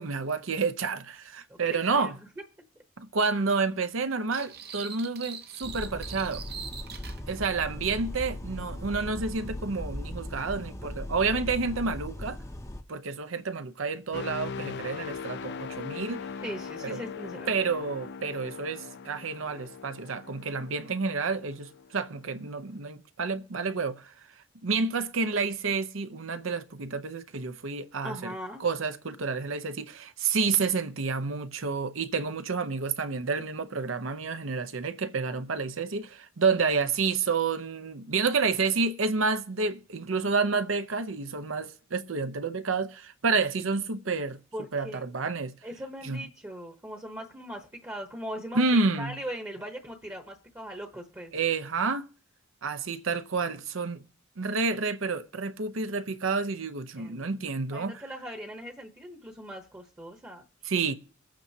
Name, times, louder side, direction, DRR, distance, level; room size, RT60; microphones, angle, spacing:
voice 1, 0.0-2.2 3.0-6.4 7.3-12.4 12.9-16.2 16.8-17.0 17.5-24.1 24.6-28.3 28.6-44.4 44.7-45.5 46.0-46.2 48.5-49.1 51.3-52.1 52.6-54.0 54.4-58.0 60.6-60.9, right 4 dB, 80° right, 0.8 m, -29 dB
voice 2, 1.5-2.1 16.4-17.5 28.0-28.6 44.5-45.1 45.6-51.3 57.0-57.3 57.7-60.7, equal, 15° right, 0.9 m, -40 dB
sound 1, 4.3-7.2, right 7 dB, 50° right, 0.8 m, -42 dB
sound 2, 5.6-12.8, left 1 dB, 15° left, 0.6 m, -38 dB
sound 3, 14.1-21.9 22.4-22.6, left 6 dB, 60° left, 0.4 m, -40 dB
23.5 x 8.8 x 2.8 m
head